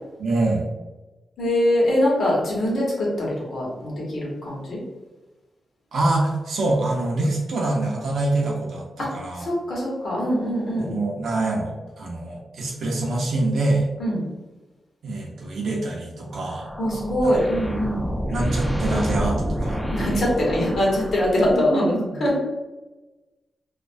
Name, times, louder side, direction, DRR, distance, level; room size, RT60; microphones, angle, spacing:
voice 1, 0.2-0.7 5.9-9.5 10.8-13.9 15.0-16.7 18.3-19.8 21.5-22.2, right 2 dB, 85° right, -2 dB, 0.5 m, -25 dB
voice 2, 1.4-4.8 9.0-9.1 9.4-11.0 14.0-14.3 16.8-18.1 19.9-21.9 22.2-22.4, left 1 dB, 65° left, -4 dB, 1.0 m, -23 dB
sound 1, 16.3-21.7, equal, 5° left, 0.3 m, -28 dB
2.4 x 2.2 x 2.5 m, 1.1 s
wide cardioid pair, 115°, 0 cm